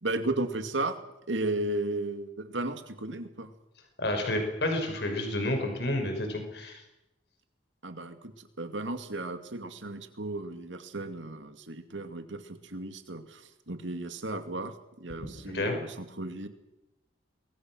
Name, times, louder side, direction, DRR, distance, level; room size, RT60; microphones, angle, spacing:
voice 1, 0.0-1.0 1.3-3.5 7.8-16.5, right 2 dB, 85° right, 8 dB, 2.4 m, -34 dB
voice 2, 4.0-6.8 15.2-15.3 15.5-15.8, left 1 dB, 65° left, 4 dB, 5.8 m, -30 dB
27.5 x 22.5 x 6.3 m, 0.91 s
head